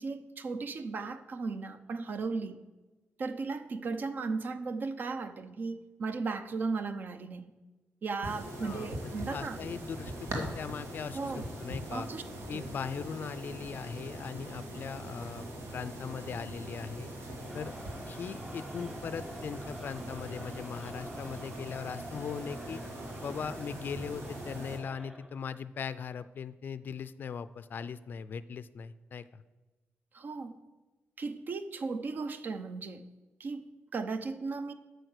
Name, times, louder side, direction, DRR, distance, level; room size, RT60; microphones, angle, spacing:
voice 1, 0.0-2.7 3.2-7.5 8.0-9.6 11.1-11.4 11.9-12.2 12.5-12.7 30.1-30.6 31.2-33.1 33.4-34.7, right 4 dB, 50° right, 0.6 m, -36 dB
sound 1, 8.2-24.8, right 1 dB, 85° right, 2.1 m, -42 dB
voice 2, 8.5-11.3 11.6-12.1 12.5-15.5 15.7-17.1 17.5-17.7 18.1-22.8 23.2-29.4, left 6 dB, 50° left, 0.4 m, -40 dB
Crowd, 17.3-25.4, equal, 10° right, 0.6 m, -49 dB
8.9 x 6.4 x 6.5 m
wide cardioid pair, 145°, 4 cm